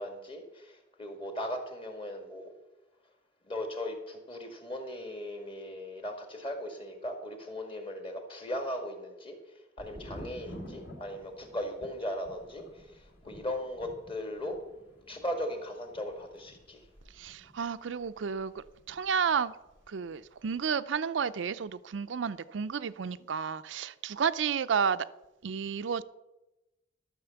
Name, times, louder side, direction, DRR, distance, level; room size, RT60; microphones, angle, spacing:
voice 1, 0.0-2.5 3.5-9.4 9.8-14.6 15.1-16.8, left 1 dB, 30° left, 1.8 m, -38 dB
Thunder, 9.8-19.4 19.7-20.4, equal, 50° left, 3.0 m, -50 dB
voice 2, 17.1-19.6 19.9-25.1 25.4-26.0, right 6 dB, 70° right, 0.4 m, -31 dB
13.0 x 6.4 x 7.0 m
head